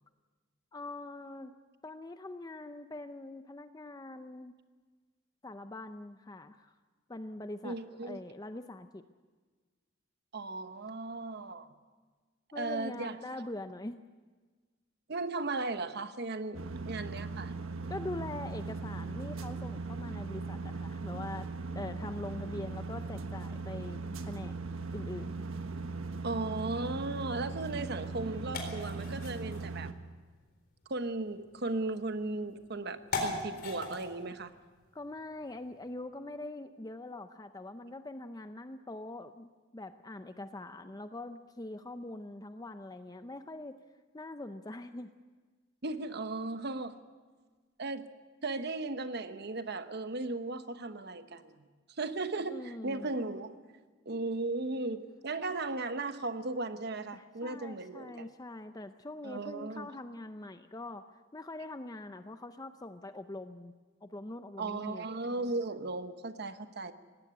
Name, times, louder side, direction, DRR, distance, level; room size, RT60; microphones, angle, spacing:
voice 1, 0.7-1.5 1.8-4.5 5.4-6.7 7.1-7.8 8.0-9.0 12.5-14.0 17.9-21.5 21.7-24.5 24.9-25.3 34.9-43.8 44.1-45.1 52.5-53.1 57.1-61.0 61.3-63.7 64.0-65.1, left 2 dB, 20° left, 9 dB, 0.6 m, -43 dB
voice 2, 7.6-8.2 10.3-11.7 12.5-13.4 15.1-17.5 26.2-29.9 30.9-34.5 45.8-46.9 47.8-48.1 48.4-51.6 51.9-53.6 54.1-58.3 59.2-59.9 64.6-66.9, right 2 dB, 55° right, 10 dB, 1.1 m, -36 dB
sound 1, 16.5-29.9, right 3 dB, 85° right, 1.3 m, -39 dB
sound 2, 27.3-35.9, left 3 dB, 50° left, 3.9 m, -43 dB
19.0 x 16.0 x 9.8 m, 1.4 s
head